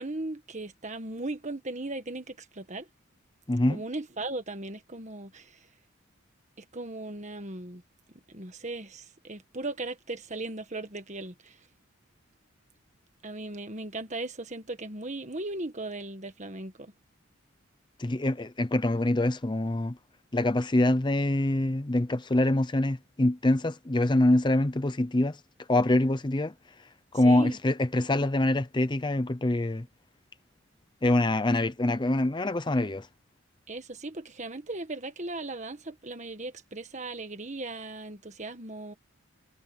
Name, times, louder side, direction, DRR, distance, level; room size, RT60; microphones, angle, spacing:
voice 1, 0.0-2.9 3.7-5.7 6.6-7.8 8.3-11.6 13.2-16.9 27.2-27.6 33.7-38.9, right 2 dB, 35° right, 1.7 m, -37 dB
voice 2, 3.5-3.8 18.0-20.0 20.3-25.4 25.7-26.5 27.1-29.9 31.0-33.1, left 1 dB, 20° left, 0.6 m, -25 dB
head